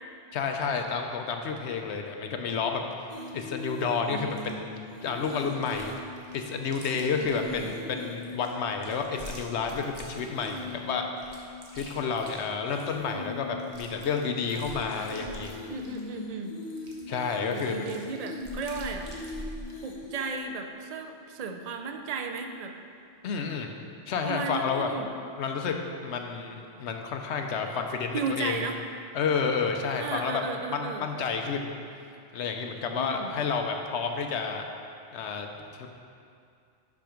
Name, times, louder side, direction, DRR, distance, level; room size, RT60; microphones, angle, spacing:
voice 1, 0.3-2.8 3.3-5.9 6.3-11.0 11.7-15.6 17.1-17.9 23.2-23.7 24.1-24.9 25.4-25.8 26.0-28.7 29.1-30.4 30.7-31.7 32.3-34.6 35.1-35.5 35.8-35.9, left 5 dB, 70° left, 4 dB, 0.9 m, -30 dB
sound 1, 3.1-9.8 10.1-20.3, left 2 dB, 40° left, 0.6 m, -42 dB
Chewing mastication, 4.3-4.5 5.2-5.9 6.2-7.7 8.2-10.7 11.2-13.0 13.3-13.4 13.6-16.1 16.6-19.6, right 1 dB, 35° right, 1.0 m, -45 dB
voice 2, 7.1-7.7 14.9-16.5 17.5-19.1 19.8-22.7 24.2-25.1 28.1-28.8 30.0-31.0 32.9-33.4, right 4 dB, 65° right, 4 dB, 0.3 m, -35 dB
6.0 x 5.8 x 5.0 m, 2.4 s
omnidirectional pair, 1.2 m